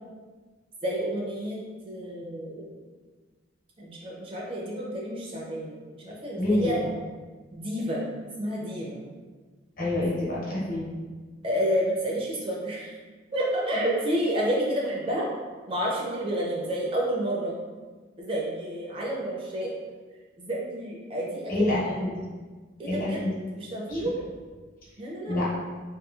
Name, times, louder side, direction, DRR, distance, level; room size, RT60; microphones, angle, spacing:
voice 1, 0.8-2.8 3.8-6.8 7.5-8.0 8.4-9.0 10.0-10.1 11.4-13.0 13.3-15.3 15.7-17.5 18.2-19.7 20.4-22.0 22.8-23.2 23.5-24.2 25.0-25.3, equal, 30° right, -3 dB, 0.4 m, -30 dB
voice 2, 6.4-6.7 9.8-11.0 21.5-22.3 22.9-23.3 23.9-24.0 25.3-25.5, left 1 dB, 45° left, -7 dB, 0.8 m, -27 dB
2.9 x 2.6 x 2.3 m, 1.4 s
head